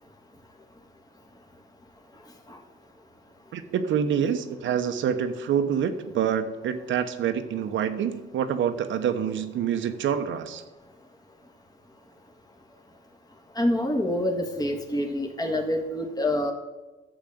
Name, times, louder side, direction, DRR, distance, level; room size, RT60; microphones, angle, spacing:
voice 1, 3.5-10.6, right 8 dB, 75° right, 8 dB, 1.1 m, -26 dB
voice 2, 13.5-16.5, left 1 dB, 20° left, 3 dB, 1.7 m, -26 dB
10.5 x 7.2 x 7.9 m, 1.1 s
cardioid pair, 90°, 20 cm